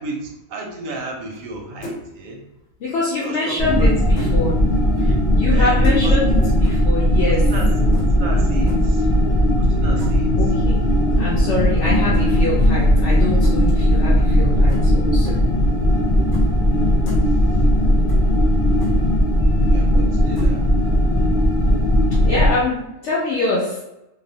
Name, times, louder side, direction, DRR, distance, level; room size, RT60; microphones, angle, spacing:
voice 1, 0.0-2.4 3.2-3.9 5.5-6.5 7.2-9.1 9.6-10.5 11.7-11.9 17.3-17.6 19.7-20.7, right 2 dB, 85° right, 2 dB, 1.0 m, -33 dB
sound 1, 1.3-1.6 1.8-2.2 3.4-4.4 5.8-6.3 6.6-7.0 7.9-8.1 8.7-8.9 10.0-10.3 12.1-12.3 13.4-13.6 14.7-14.8 15.2-15.4 16.3-16.5 16.8-17.2 18.1-18.2 18.5-18.6 18.8-18.9 20.4-20.6, left 1 dB, 90° left, 1.2 m, -35 dB
voice 2, 2.8-4.6 5.0-7.4 10.4-10.8 11.2-15.4 22.2-23.8, left 2 dB, 65° left, -6 dB, 0.9 m, -24 dB
sound 2, 3.6-22.5, equal, 40° left, 0.6 m, -17 dB
2.8 x 2.0 x 2.6 m, 0.90 s
omnidirectional pair, 1.3 m